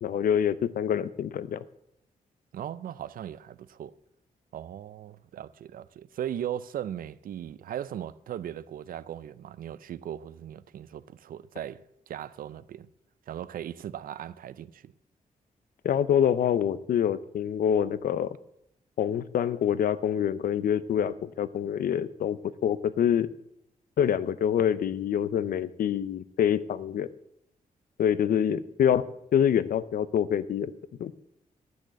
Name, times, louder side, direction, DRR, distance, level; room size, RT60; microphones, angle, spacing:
voice 1, 0.0-1.6 15.8-18.3 19.0-23.3 24.0-27.1 28.0-29.1 29.3-30.7 31.0-31.1, left 9 dB, 80° left, 0.6 m, -26 dB
voice 2, 2.5-3.9 4.5-12.9 13.3-14.9, right 10 dB, 80° right, 0.5 m, -38 dB
10.5 x 6.4 x 7.6 m
cardioid pair, 105°, 15 cm